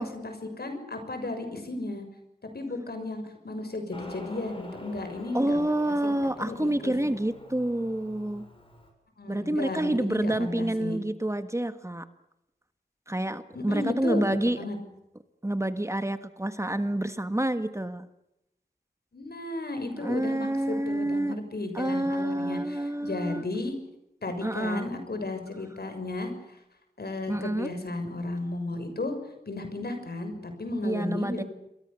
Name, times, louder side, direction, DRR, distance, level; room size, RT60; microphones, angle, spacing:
voice 1, 0.0-2.0 2.5-6.1 6.4-6.9 9.2-11.0 13.5-14.8 19.1-23.7 24.2-26.3 27.0-29.1 29.5-31.4, left 2 dB, 70° left, 6 dB, 6.4 m, -34 dB
Motorcycle, 3.9-8.9, left 1 dB, 30° left, 7.1 m, -46 dB
voice 2, 5.3-8.5 9.3-12.0 13.1-14.6 15.4-18.1 20.0-21.4 21.7-23.4 24.4-24.9 27.3-27.7 30.8-31.4, right 1 dB, 15° right, 10 dB, 1.5 m, -28 dB
28.5 x 22.5 x 6.9 m, 0.85 s
wide cardioid pair, 70°, 17 cm